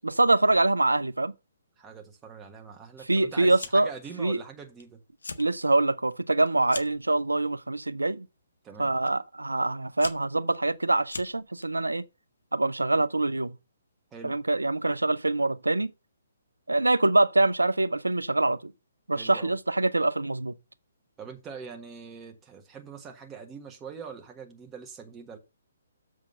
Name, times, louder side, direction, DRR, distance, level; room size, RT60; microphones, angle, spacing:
voice 1, 0.0-1.3 3.1-3.9 4.2-4.4 5.4-8.3 8.8-12.0 12.5-13.5 14.2-15.9 16.7-18.7 19.1-20.6, right 2 dB, 85° right, 0.7 m, -24 dB
voice 2, 1.8-5.0 8.6-8.9 14.1-14.4 19.1-19.5 21.2-25.4, right 6 dB, 15° right, 1.5 m, -43 dB
Fire, 3.5-4.0 4.3-4.8 5.1-5.5 5.9-7.1 7.8-8.2 9.1-9.2 9.7-11.7, left 3 dB, 75° left, 1.1 m, -41 dB
7.4 x 6.3 x 5.5 m
figure-of-eight pair, 135°, 0 cm